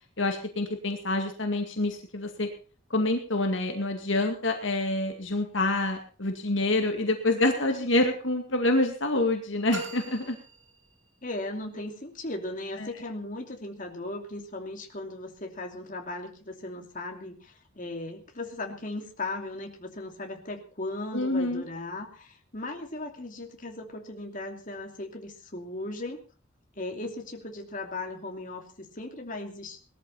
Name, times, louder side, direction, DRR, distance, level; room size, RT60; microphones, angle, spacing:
voice 1, 0.2-2.5 2.9-10.4 12.8-12.9 21.1-21.6, left 2 dB, 65° left, 4 dB, 2.1 m, -27 dB
sound 1, 9.7-11.4, right 2 dB, 65° right, 2.2 m, -41 dB
voice 2, 11.2-26.2 26.8-29.8, left 2 dB, 40° left, 2 dB, 2.7 m, -37 dB
19.5 x 13.5 x 4.2 m, 0.40 s
head